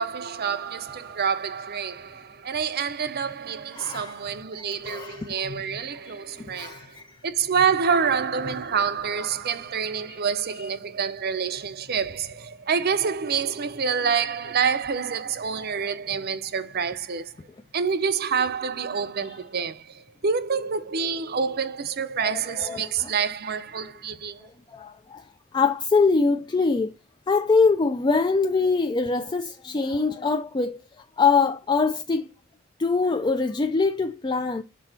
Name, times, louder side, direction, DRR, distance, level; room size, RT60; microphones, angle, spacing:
voice 1, 0.0-7.0 7.2-17.3 17.7-24.5, right 6 dB, 45° right, 0.6 m, -27 dB
voice 2, 3.8-4.2 4.6-5.8 6.4-7.2 9.9-10.2 22.2-23.1 23.8-23.9 24.7-25.3 25.5-26.9 27.3-32.3 32.8-34.6, left 4 dB, 20° left, 0.3 m, -24 dB
6.2 x 4.2 x 3.9 m
head